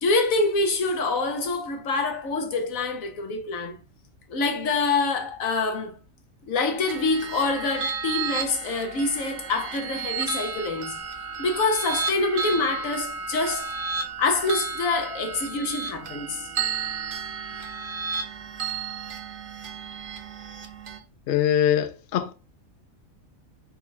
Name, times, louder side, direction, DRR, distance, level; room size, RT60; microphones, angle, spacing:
voice 1, 0.0-3.8 4.3-5.9 6.4-11.0 11.4-13.7 14.2-16.5, left 3 dB, 85° left, 1.3 m, -26 dB
sound 1, 6.9-21.0, right 5 dB, 50° right, 0.7 m, -33 dB
voice 2, 21.3-22.3, left 9 dB, 60° left, 0.7 m, -22 dB
4.3 x 2.3 x 4.1 m
omnidirectional pair, 1.4 m